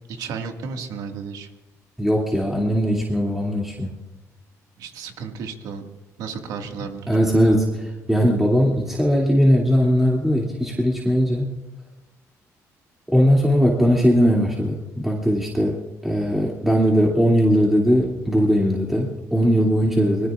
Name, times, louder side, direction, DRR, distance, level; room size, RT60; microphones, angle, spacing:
voice 1, 0.1-1.5 4.8-5.8 6.2-7.1, right 5 dB, 80° right, 4 dB, 2.0 m, -33 dB
voice 2, 2.0-4.0 7.1-11.5 13.1-20.3, equal, 5° right, -3 dB, 2.6 m, -19 dB
25.5 x 21.0 x 2.5 m, 1.0 s
cardioid pair, 95°, 6 cm